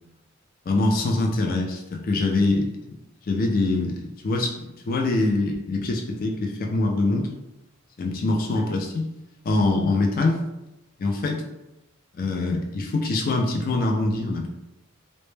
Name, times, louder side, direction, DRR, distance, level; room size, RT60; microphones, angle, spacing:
voice 1, 0.7-2.7 3.3-4.5 4.9-7.3 8.0-9.1 9.4-10.4 11.0-11.4 12.1-14.5, left 2 dB, 40° left, 2 dB, 0.3 m, -24 dB
2.1 x 2.1 x 3.1 m, 0.93 s
head